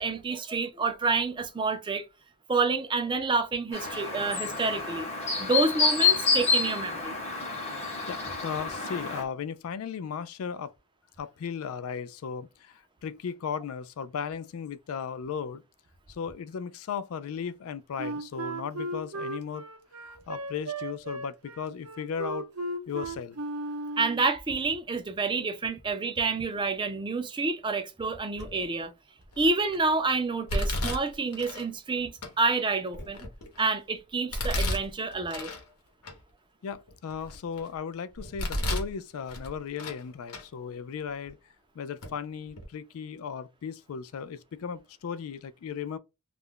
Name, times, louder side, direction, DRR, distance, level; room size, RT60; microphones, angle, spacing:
voice 1, 0.0-2.0 2.5-5.1 5.4-7.1 24.0-28.9 29.4-33.3 33.6-35.5, right 3 dB, 20° right, 0.4 m, -28 dB
Chirp tweet, 3.7-9.2, left 4 dB, 30° left, 0.9 m, -28 dB
voice 2, 8.1-10.7 11.2-15.6 16.1-19.6 20.0-22.5 22.9-23.4 36.6-41.4 41.8-46.0, left 7 dB, 65° left, 0.3 m, -36 dB
Wind instrument woodwind instrument, 18.0-24.3, right 2 dB, 70° right, 0.6 m, -36 dB
Domestic sounds home sounds, 28.4-28.8 29.3-29.8 30.5-31.7 32.2-32.3 32.9-33.7 34.3-35.6 36.0-36.1 36.7-37.7 38.1-38.9 39.3-40.0 40.3-40.4 41.3-41.4 42.0-42.1 42.5-42.6, left 1 dB, 85° left, 0.9 m, -32 dB
2.4 x 2.1 x 3.6 m
head